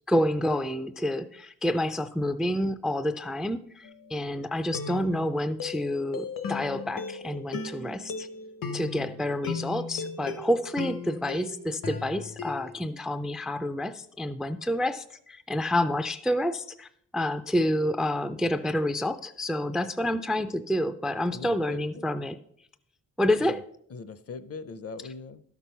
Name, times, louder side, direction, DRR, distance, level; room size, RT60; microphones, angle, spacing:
voice 1, 0.1-8.3 8.7-22.4 23.2-23.6, left 1 dB, ahead, 10 dB, 0.3 m, -28 dB
sound 1, 3.8-4.1 4.7-12.7, left 5 dB, 80° left, 1.2 m, -37 dB
voice 2, 9.0-9.3 21.3-22.0 23.3-23.6 23.9-25.4, left 4 dB, 45° left, 14 dB, 0.6 m, -41 dB
12.5 x 6.1 x 5.5 m, 0.68 s
wide cardioid pair, 145°, 33 cm